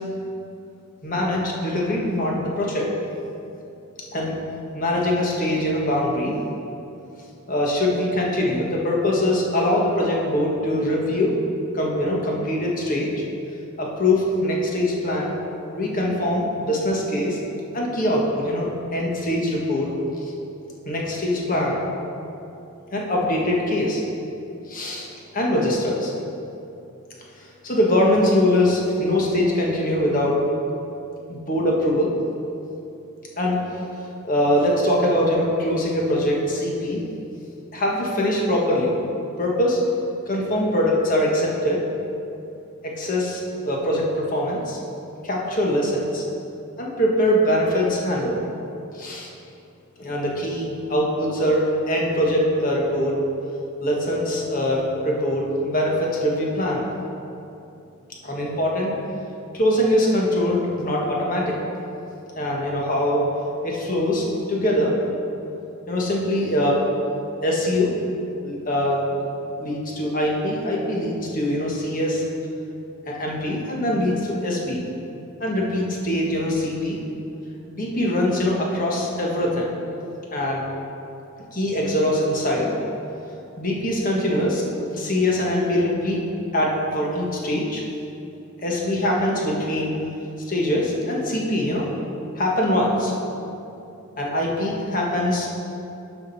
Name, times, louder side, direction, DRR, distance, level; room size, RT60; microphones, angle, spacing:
voice 1, 1.0-2.9 4.1-4.4 4.7-6.4 7.5-11.3 11.7-13.1 13.8-15.3 15.7-17.4 17.7-19.9 20.2-20.3 20.8-21.8 22.9-24.0 24.7-25.1 25.3-26.1 27.4-30.4 31.3-32.1 33.4-33.6 34.2-37.0 37.7-39.0 39.4-39.8 40.3-41.8 42.8-44.8 45.2-46.2 46.8-48.5 48.9-49.3 50.0-53.2 53.8-56.9 58.2-59.0 59.5-61.6 62.4-63.3 63.6-65.0 65.9-66.8 67.4-68.0 68.4-69.2 69.6-72.2 73.1-74.8 75.4-77.0 77.7-79.7 80.3-80.6 81.5-82.7 83.6-84.6 84.9-86.2 86.5-87.8 88.6-89.9 90.5-91.9 92.4-93.1 94.2-95.5, left 1 dB, 40° left, -2 dB, 1.4 m, -23 dB
11.5 x 5.2 x 4.1 m, 2.8 s
head